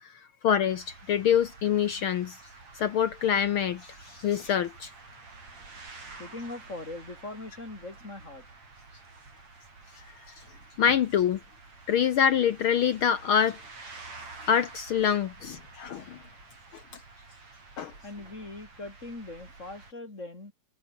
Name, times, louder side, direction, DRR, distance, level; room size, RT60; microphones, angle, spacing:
voice 1, 0.0-2.4 2.7-4.9 9.9-10.0 10.3-10.4 10.8-11.4 11.9-13.6 14.4-16.2 17.8-17.9, left 8 dB, 65° left, 1.3 m, -26 dB
sound 1, 0.7-19.9, right 3 dB, 65° right, 7.8 m, -49 dB
voice 2, 6.2-8.5 18.0-20.5, left 2 dB, 25° left, 4.0 m, -41 dB
omnidirectional pair, 3.3 m